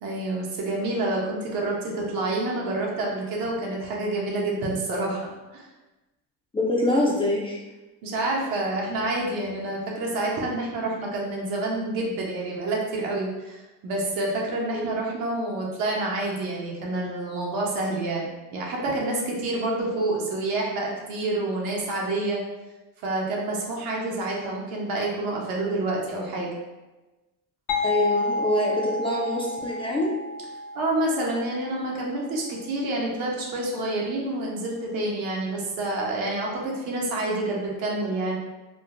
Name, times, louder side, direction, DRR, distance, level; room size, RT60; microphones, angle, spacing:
voice 1, 0.0-5.3 5.5-5.7 8.0-22.4 23.0-26.5 30.7-38.4, right 2 dB, 65° right, -2 dB, 0.9 m, -28 dB
voice 2, 6.5-7.6 14.7-15.0 27.8-30.1, left 1 dB, 15° left, -4 dB, 0.4 m, -25 dB
sound 1, 27.7-33.2, left 3 dB, 60° left, 0.6 m, -31 dB
3.6 x 2.1 x 2.5 m, 1.1 s
supercardioid pair, 100°, 37 cm